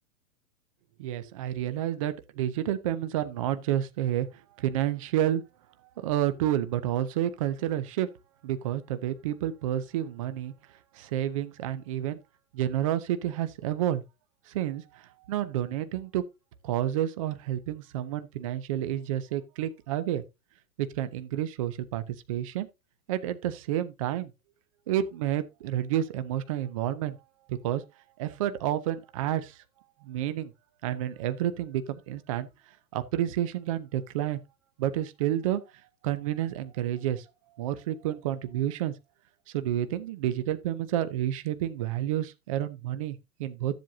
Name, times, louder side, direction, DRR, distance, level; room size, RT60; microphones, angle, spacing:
voice 1, 1.0-4.3 4.6-5.4 6.0-8.1 8.4-10.5 10.9-12.2 12.5-14.0 14.5-16.2 16.6-20.2 20.8-22.7 23.1-24.3 24.9-27.2 27.5-27.8 28.2-29.6 30.0-30.5 30.8-32.5 32.9-34.4 34.8-35.6 36.0-37.2 37.6-38.9 39.5-43.7, right 12 dB, 25° right, 0.4 m, -30 dB
13.5 x 7.7 x 2.7 m
hypercardioid pair, 155°, 46 cm